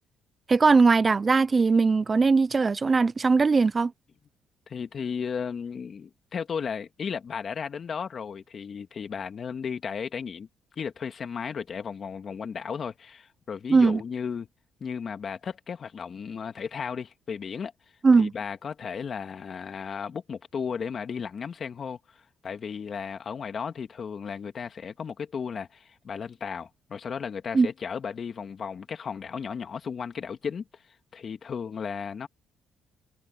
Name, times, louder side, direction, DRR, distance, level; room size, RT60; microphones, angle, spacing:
voice 1, 0.5-3.9 13.7-14.0 18.0-18.3 27.5-27.7, right 4 dB, 30° right, 0.4 m, -20 dB
voice 2, 4.7-10.5 10.7-14.5 14.8-17.7 18.2-30.8 31.1-32.3, left 6 dB, 50° left, 2.1 m, -35 dB
cardioid pair, 90°, 0 cm